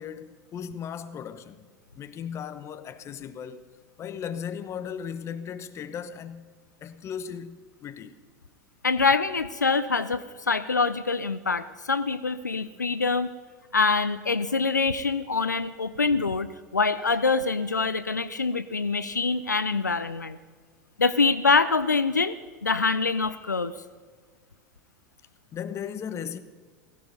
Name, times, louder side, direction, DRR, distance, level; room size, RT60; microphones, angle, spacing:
voice 1, 0.0-1.7 1.9-3.6 4.0-6.4 6.8-8.1 25.5-26.4, left 8 dB, 30° left, 1.0 m, -36 dB
voice 2, 8.8-13.3 13.7-20.4 21.0-22.3 22.6-23.7, left 4 dB, 90° left, 0.5 m, -25 dB
16.5 x 15.5 x 5.4 m
figure-of-eight pair, 90°, 9 cm